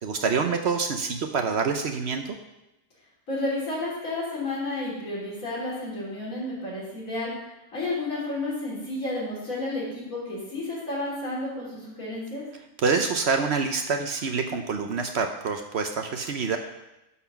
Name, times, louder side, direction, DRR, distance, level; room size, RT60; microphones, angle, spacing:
voice 1, 0.0-2.4 12.8-16.6, right 5 dB, 60° right, 5 dB, 0.9 m, -26 dB
voice 2, 3.3-7.3 7.7-12.4, left 2 dB, 75° left, -7 dB, 3.9 m, -31 dB
11.5 x 4.2 x 5.7 m, 0.93 s
omnidirectional pair, 1.4 m